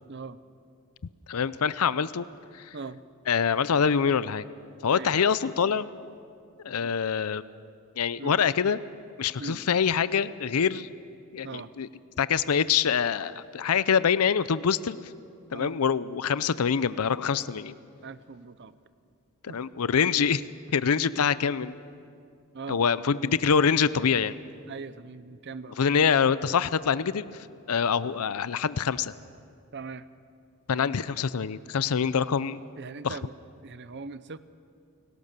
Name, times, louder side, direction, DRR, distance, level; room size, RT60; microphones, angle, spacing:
voice 1, 0.1-0.4 2.7-3.0 4.9-5.1 6.8-6.9 8.2-8.4 9.4-9.6 11.4-11.7 15.5-15.8 18.0-18.8 19.5-19.6 22.5-22.8 24.7-25.8 29.7-30.1 30.7-30.9 32.8-33.3 33.6-34.4, right 4 dB, 50° right, 14 dB, 0.7 m, -40 dB
voice 2, 1.3-2.3 2.5-2.7 3.3-4.5 4.8-5.9 6.6-7.4 8.0-8.8 9.2-10.9 11.3-11.9 12.2-15.0 15.5-17.8 19.4-20.4 20.7-21.8 22.7-24.3 25.8-29.1 30.7-32.6 33.0-33.2, left 6 dB, 75° left, 16 dB, 0.6 m, -25 dB
29.5 x 18.0 x 6.7 m, 2.4 s
head